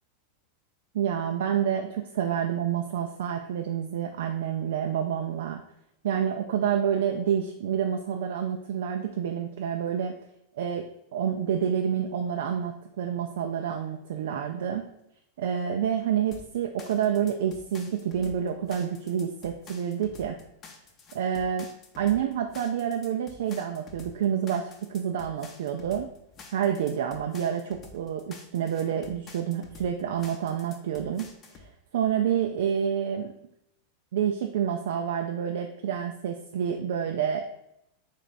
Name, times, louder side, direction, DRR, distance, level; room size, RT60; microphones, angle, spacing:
voice 1, 0.9-5.6 6.0-10.1 10.6-10.8 11.1-14.9 15.4-20.4 21.1-21.7 22.0-26.1 26.5-31.3 31.6-31.7 31.9-33.3 34.1-37.4, right 8 dB, 70° right, 4 dB, 0.3 m, -28 dB
sound 1, 16.3-31.7, left 4 dB, 35° left, 0.7 m, -49 dB
3.3 x 3.2 x 4.0 m, 0.79 s
hypercardioid pair, 100°, 0 cm